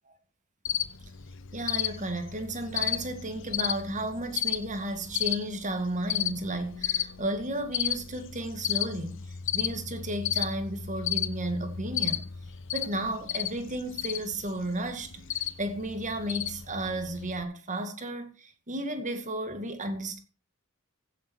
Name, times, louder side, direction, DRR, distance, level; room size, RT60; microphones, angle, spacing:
Cricket, 0.7-17.4, left 10 dB, 65° left, 0.8 m, -34 dB
voice 1, 1.5-12.3 12.7-20.2, right 1 dB, 35° right, 1.9 m, -33 dB
16.0 x 7.3 x 4.5 m
head